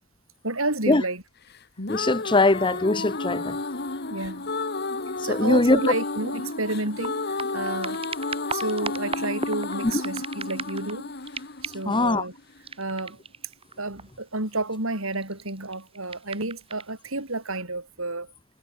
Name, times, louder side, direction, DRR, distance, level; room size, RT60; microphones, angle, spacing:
voice 1, 0.4-1.2 4.1-4.5 5.2-8.1 8.5-11.1 11.6-12.3 12.8-13.2 13.8-18.3, right 2 dB, 70° right, 6.3 m, -30 dB
sound 1, 1.5-12.6, left 3 dB, 50° left, 1.9 m, -32 dB
voice 2, 1.9-3.6 5.3-5.9 11.9-12.2, left 2 dB, 20° left, 0.8 m, -21 dB
sound 2, 5.6-5.7 6.1-11.0 11.2-12.0 12.6-14.3 15.0-16.9 17.5-17.6, right 4 dB, 25° right, 4.2 m, -38 dB
head